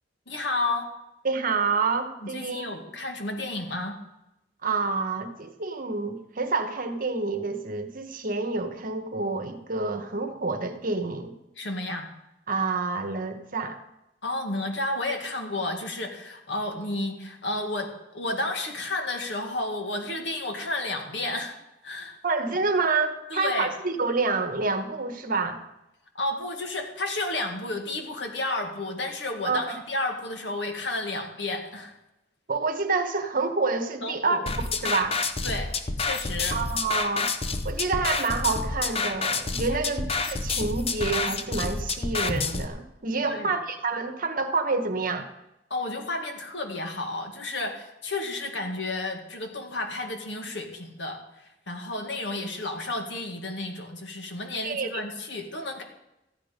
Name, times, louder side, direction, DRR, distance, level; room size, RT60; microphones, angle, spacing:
voice 1, 0.3-0.9 2.3-4.0 11.6-12.1 14.2-21.6 21.8-22.2 22.5-22.6 23.3-23.7 26.1-31.9 34.0-34.4 35.4-35.7 36.0-36.6 40.0-40.1 43.3-43.5 45.7-55.8, left 2 dB, 75° left, 3 dB, 2.0 m, -32 dB
voice 2, 1.2-2.7 4.6-11.3 12.5-13.8 22.2-25.6 29.4-29.8 32.5-35.2 36.5-37.3 37.6-45.3 54.6-55.0, right 4 dB, 50° right, 7 dB, 1.2 m, -28 dB
sound 1, 34.5-42.7, left 4 dB, 35° left, 0.8 m, -29 dB
14.0 x 10.0 x 5.2 m, 0.90 s
head